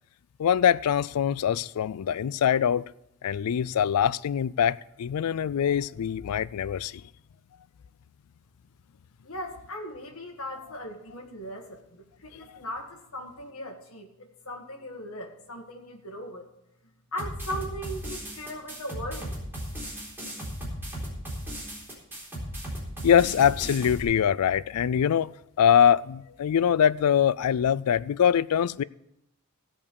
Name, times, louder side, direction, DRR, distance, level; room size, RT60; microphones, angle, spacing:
voice 1, 0.4-2.9 3.2-7.0 12.3-12.4 23.0-28.8, left 8 dB, 85° left, 0.4 m, -23 dB
voice 2, 9.2-16.5 17.1-19.3, equal, 70° left, 1.9 m, -38 dB
sound 1, 17.2-24.0, equal, 10° right, 3.8 m, -36 dB
16.0 x 5.5 x 6.8 m
head